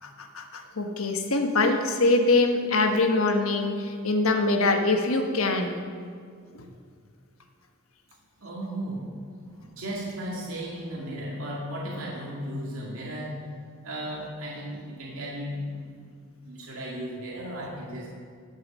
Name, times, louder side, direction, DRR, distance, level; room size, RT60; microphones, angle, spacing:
voice 1, 0.0-5.8 6.5-6.6, left 2 dB, 80° left, 5 dB, 1.2 m, -24 dB
voice 2, 8.4-13.4 13.8-16.1 16.4-18.1, equal, 80° right, -4 dB, 2.0 m, -35 dB
16.0 x 6.5 x 5.4 m, 2.1 s
head